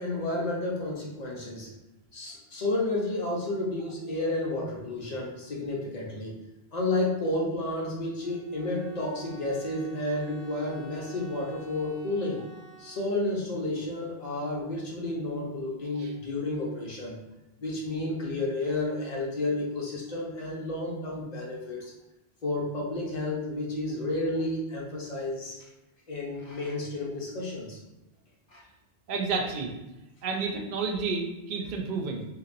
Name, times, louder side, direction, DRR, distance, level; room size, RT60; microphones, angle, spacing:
voice 1, 0.0-1.7 2.1-6.3 6.7-12.4 12.8-17.2 17.6-21.9 22.4-25.6 26.1-27.8 28.5-28.6, left 2 dB, 40° left, -3 dB, 0.8 m, -31 dB
Bowed string instrument, 8.2-13.4, right 3 dB, 85° right, 1.5 m, -51 dB
voice 2, 29.1-29.7 30.2-32.3, right 4 dB, 55° right, 2 dB, 0.6 m, -30 dB
3.0 x 2.7 x 2.5 m, 0.95 s
omnidirectional pair, 1.1 m